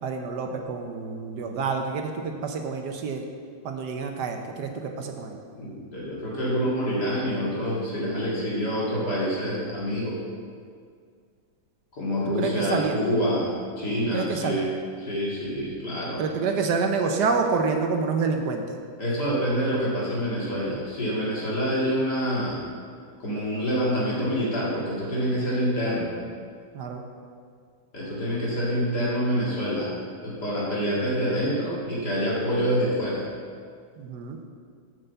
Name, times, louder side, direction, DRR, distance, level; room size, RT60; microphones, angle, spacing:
voice 1, 0.0-3.3 3.6-5.4 12.3-13.0 14.1-14.7 16.2-18.8 26.7-27.0 34.0-34.4, right 4 dB, 70° right, 4 dB, 1.3 m, -28 dB
voice 2, 5.5-10.2 11.9-14.7 15.0-16.2 19.0-22.6 23.2-26.1 27.9-29.9 30.2-33.3, equal, 60° left, -6 dB, 3.0 m, -26 dB
7.3 x 6.8 x 6.9 m, 2.1 s
omnidirectional pair, 2.0 m